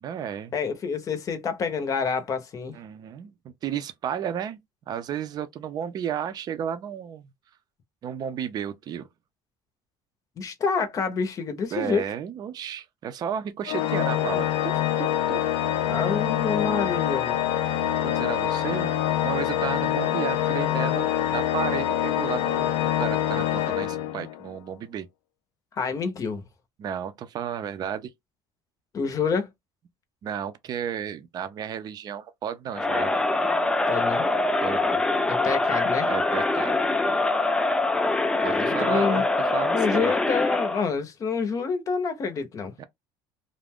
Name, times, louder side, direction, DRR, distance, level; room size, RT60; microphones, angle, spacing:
voice 1, 0.0-0.5 2.7-4.6 4.9-7.3 8.0-9.1 11.7-15.4 18.0-18.9 19.2-25.1 26.8-28.1 30.2-33.2 34.6-35.0 36.1-36.7 38.4-40.1 42.8-42.9, right 9 dB, 45° right, 0.5 m, -33 dB
voice 2, 0.5-2.8 10.4-12.0 15.8-17.4 25.7-26.4 28.9-29.5 33.9-34.3 35.3-36.1 38.5-39.2 39.7-42.7, left 5 dB, 35° left, 0.7 m, -27 dB
Organ, 13.7-24.5, left 11 dB, 85° left, 0.4 m, -25 dB
sound 1, 17.6-21.3, left 4 dB, 80° right, 0.8 m, -47 dB
Crowd, 32.7-40.9, left 2 dB, 10° left, 0.3 m, -24 dB
2.4 x 2.2 x 3.5 m
cardioid pair, 125°, 10 cm